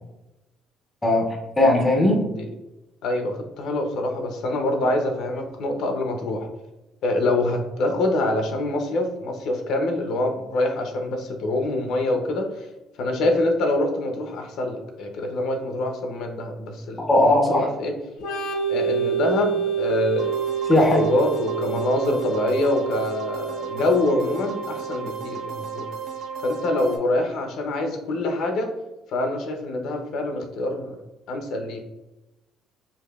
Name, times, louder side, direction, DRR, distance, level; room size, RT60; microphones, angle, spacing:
voice 1, 1.0-2.2 17.0-17.7 20.7-21.0, left 1 dB, 10° left, 0 dB, 0.5 m, -18 dB
voice 2, 3.0-6.5 7.0-12.7 13.0-17.9 18.7-20.3 20.7-25.9 26.4-28.7 29.1-31.0 31.3-31.8, left 2 dB, 60° left, 4 dB, 0.5 m, -25 dB
Organ, 18.2-25.7, right 7 dB, 80° left, 0.9 m, -28 dB
sound 1, 20.2-27.0, right 5 dB, 65° right, 0.5 m, -35 dB
4.7 x 2.6 x 2.3 m, 0.98 s
cardioid pair, 180°, 0 cm